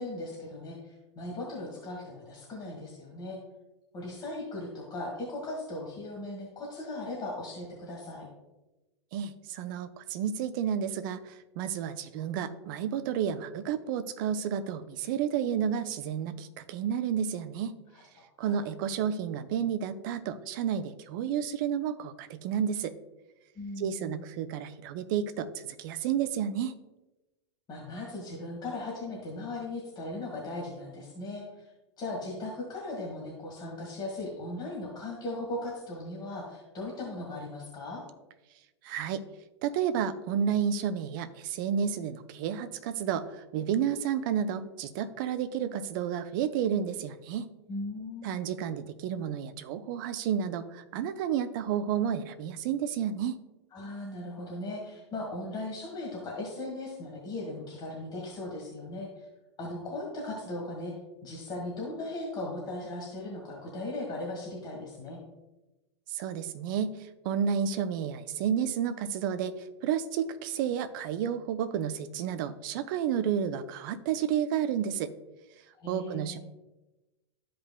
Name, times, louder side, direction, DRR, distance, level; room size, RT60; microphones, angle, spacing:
voice 1, 0.0-3.4 3.9-8.3 18.4-18.6 23.6-24.2 27.7-31.7 32.0-38.0 47.7-48.3 53.7-59.3 59.6-65.2 75.8-76.4, left 2 dB, 30° left, -2 dB, 1.8 m, -38 dB
voice 2, 9.1-17.8 18.4-22.9 23.8-26.7 38.8-39.2 39.6-47.5 48.2-53.4 66.1-75.1 75.9-76.4, right 8 dB, 45° right, 12 dB, 0.6 m, -31 dB
13.0 x 5.1 x 2.2 m, 1.0 s
figure-of-eight pair, 90°, 15 cm